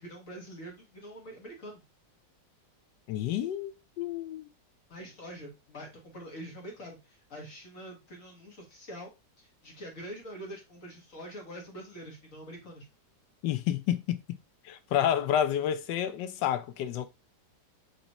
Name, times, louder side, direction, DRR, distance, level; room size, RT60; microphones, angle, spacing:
voice 1, 0.0-1.8 4.9-9.1 9.4-12.9, equal, 50° left, 1.7 m, -45 dB
voice 2, 3.1-4.5 13.4-14.2 14.6-17.1, left 10 dB, 75° left, 1.3 m, -29 dB
5.3 x 3.0 x 2.9 m
omnidirectional pair, 2.0 m